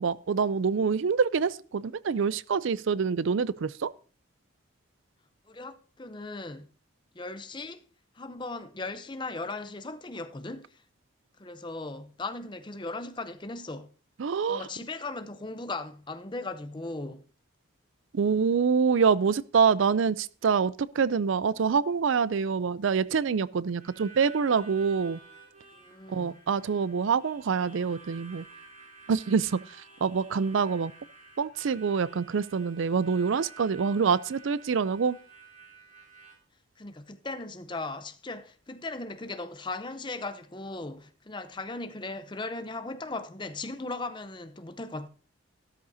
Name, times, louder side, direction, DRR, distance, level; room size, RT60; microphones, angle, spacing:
voice 1, 0.0-3.9 14.2-14.6 18.1-25.2 26.1-28.4 29.1-29.6 30.0-30.9 31.4-35.2, right 5 dB, 70° right, 0.4 m, -26 dB
voice 2, 5.5-6.7 7.1-7.8 8.1-10.8 11.4-13.9 14.5-17.2 25.7-26.4 36.8-45.1, left 2 dB, 20° left, 0.7 m, -38 dB
Harmonica, 23.8-36.3, right 4 dB, 40° right, 4.6 m, -51 dB
14.0 x 13.0 x 2.7 m
head